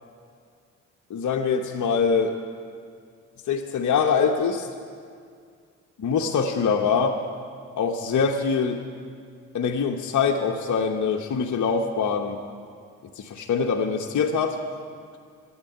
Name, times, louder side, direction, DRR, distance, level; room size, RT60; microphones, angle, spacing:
voice 1, 1.1-2.4 3.5-4.7 6.0-7.2 7.8-8.8 9.5-12.4 13.2-14.6, left 5 dB, 50° left, 3 dB, 1.1 m, -24 dB
12.5 x 9.0 x 10.0 m, 2.2 s
hypercardioid pair, 45°, 38 cm